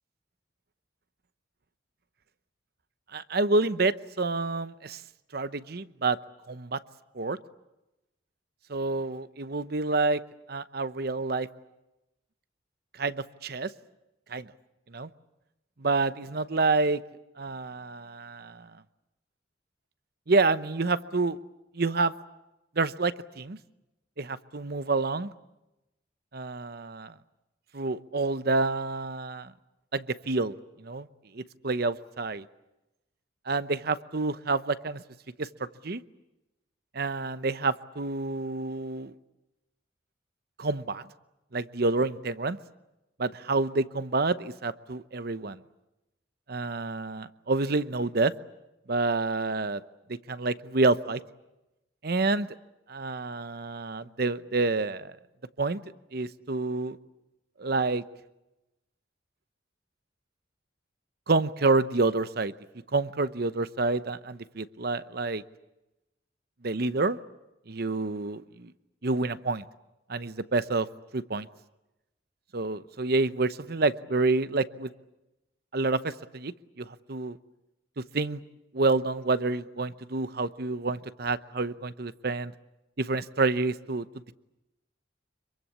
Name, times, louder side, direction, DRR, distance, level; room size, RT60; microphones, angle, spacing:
voice 1, 3.1-5.0 5.3-6.2 6.5-6.8 7.1-7.4 8.7-10.2 10.5-11.5 13.0-13.7 14.3-14.5 14.9-15.1 15.8-17.0 17.4-18.7 20.3-21.4 21.7-22.1 22.8-23.6 24.2-25.3 26.3-27.1 27.7-29.5 29.9-31.1 31.3-32.4 33.5-35.0 35.4-35.5 35.8-36.0 36.9-39.1 40.6-41.0 41.5-42.6 43.2-45.6 46.5-48.3 48.9-49.8 50.1-51.2 52.0-52.5 52.9-55.1 55.6-55.8 56.1-57.0 57.6-58.0 61.3-62.5 62.9-65.4 66.6-67.2 67.7-68.7 69.0-69.6 70.1-70.9 71.1-71.5 72.5-74.9 75.7-77.4 78.1-78.4 78.7-82.5 83.0-84.1, right 3 dB, 55° right, 14 dB, 0.9 m, -28 dB
26.0 x 23.5 x 8.4 m, 0.96 s
head